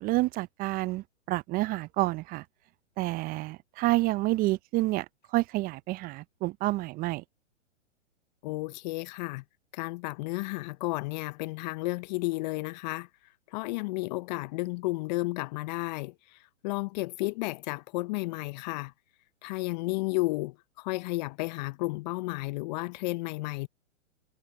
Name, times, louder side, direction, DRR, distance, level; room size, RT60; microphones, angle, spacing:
voice 1, 0.0-2.4 3.0-7.2, right 19 dB, 25° right, 0.7 m, -29 dB
voice 2, 8.4-9.4 9.7-13.1 13.5-18.9 19.4-23.7, left 22 dB, 35° left, 0.8 m, -32 dB
hypercardioid pair, 115°, 37 cm